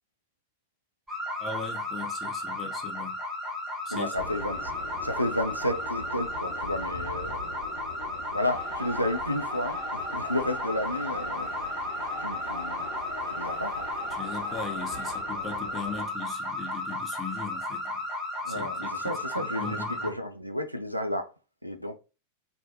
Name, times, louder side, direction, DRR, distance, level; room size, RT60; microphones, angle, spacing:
sound 1, 1.1-20.1, left 1 dB, 10° right, 0.8 m, -34 dB
voice 1, 1.4-3.2 3.8-4.1 14.1-18.0 18.5-20.1, left 5 dB, 20° left, 0.7 m, -39 dB
voice 2, 3.9-4.7 5.0-7.4 8.3-11.5 12.2-12.9 13.3-13.9 18.4-21.3 21.6-22.0, left 1 dB, 90° right, 0.3 m, -32 dB
sound 2, 4.1-16.1, left 2 dB, 60° left, 1.0 m, -43 dB
sound 3, 8.4-15.2, left 1 dB, 50° right, 1.0 m, -44 dB
2.6 x 2.2 x 2.6 m
figure-of-eight pair, 90°, 0 cm